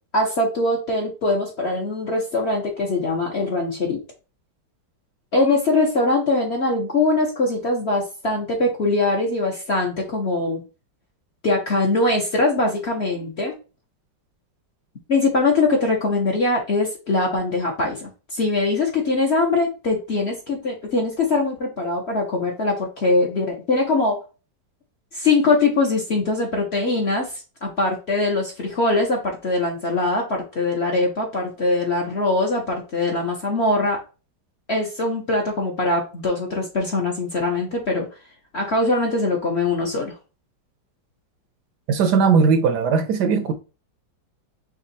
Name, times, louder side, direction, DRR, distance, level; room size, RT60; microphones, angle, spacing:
voice 1, 0.1-4.0 5.3-10.6 11.4-13.6 15.1-24.2 25.1-34.0 34.7-38.1 38.5-40.1, left 2 dB, 50° left, 0.9 m, -22 dB
voice 2, 41.9-43.5, right 5 dB, 70° right, 1.1 m, -18 dB
5.2 x 2.3 x 3.9 m
omnidirectional pair, 2.0 m